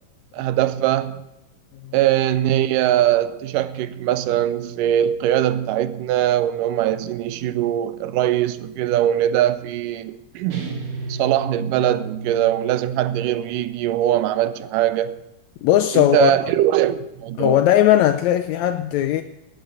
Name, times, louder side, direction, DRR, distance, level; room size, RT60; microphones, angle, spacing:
voice 1, 0.3-1.2 1.9-10.7 11.1-15.2 15.9-17.6, right 12 dB, 85° right, 2.3 m, -21 dB
sound 1, 10.5-13.1, right 3 dB, 55° right, 3.2 m, -33 dB
voice 2, 15.6-16.3 17.4-19.2, left 12 dB, 80° left, 1.6 m, -17 dB
18.0 x 9.2 x 6.5 m
omnidirectional pair, 3.8 m